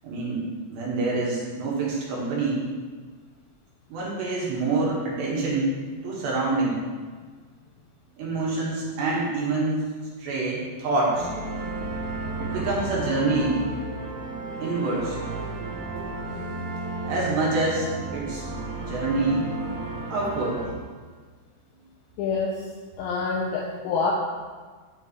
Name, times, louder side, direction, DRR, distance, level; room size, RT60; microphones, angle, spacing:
voice 1, 0.0-2.7 3.9-5.7 6.0-6.8 8.2-9.8 10.2-11.3 12.4-13.6 14.6-15.2 17.0-18.4 18.8-19.5 20.1-20.6, right 3 dB, 65° right, -5 dB, 3.3 m, -26 dB
sound 1, 11.1-20.7, right 2 dB, 45° right, 2.8 m, -33 dB
voice 2, 22.2-22.7 23.0-24.1, left 4 dB, 90° left, -3 dB, 2.6 m, -26 dB
8.9 x 8.0 x 3.1 m, 1.5 s
omnidirectional pair, 6.0 m